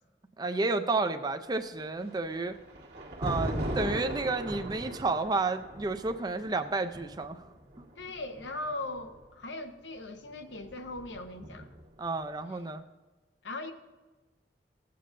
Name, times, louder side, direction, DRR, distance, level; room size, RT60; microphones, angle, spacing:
voice 1, 0.4-2.6 3.2-7.4 7.8-7.9 12.0-12.8, right 3 dB, 25° right, 8 dB, 0.4 m, -31 dB
Thunder, 2.0-9.2 10.2-12.0, right 1 dB, 70° right, 1.5 m, -38 dB
voice 2, 8.0-11.7 12.5-12.6 13.4-13.7, left 2 dB, 90° left, 7 dB, 0.8 m, -39 dB
15.5 x 8.4 x 2.6 m, 1.2 s
head